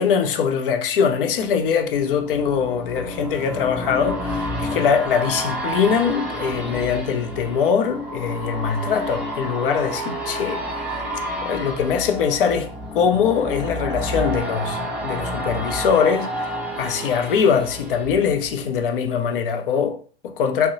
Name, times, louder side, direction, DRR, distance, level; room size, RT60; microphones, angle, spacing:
voice 1, 0.0-11.0 11.4-20.7, left 6 dB, 60° left, 0.5 m, -22 dB
sound 1, 1.1-18.9 19.3-19.4, equal, 5° right, 0.5 m, -30 dB
2.6 x 2.1 x 2.6 m
figure-of-eight pair, 90°, 31 cm